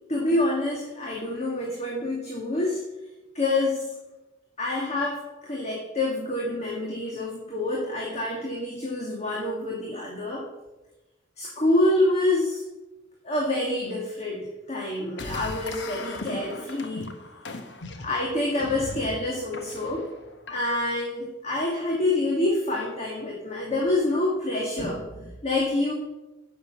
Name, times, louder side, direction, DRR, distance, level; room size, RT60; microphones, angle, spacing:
voice 1, 0.1-2.8 3.3-3.9 4.6-10.4 11.4-12.6 13.2-17.1 18.0-20.1 20.5-25.9, left 2 dB, 35° left, -2 dB, 1.9 m, -27 dB
sound 1, 15.2-21.0, left 2 dB, 65° left, 1.2 m, -39 dB
10.5 x 6.7 x 7.1 m, 1.1 s
head